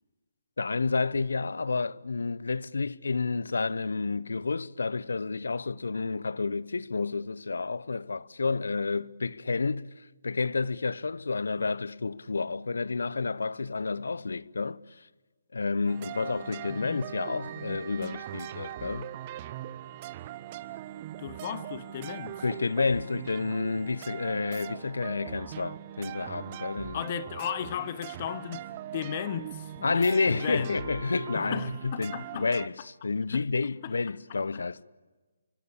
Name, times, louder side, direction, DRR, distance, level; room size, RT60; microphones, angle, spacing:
voice 1, 0.6-15.1 15.5-19.1 22.4-27.1 29.8-34.8, left 4 dB, 75° left, 0.8 m, -30 dB
sound 1, 15.9-32.7, right 13 dB, 30° right, 0.9 m, -41 dB
voice 2, 16.7-17.0 21.2-22.4 26.9-30.8 31.3-32.5 33.3-33.5 33.8-33.9 34.5-34.6, left 10 dB, 40° left, 1.2 m, -36 dB
28.5 x 24.5 x 8.6 m
figure-of-eight pair, 150°, 0 cm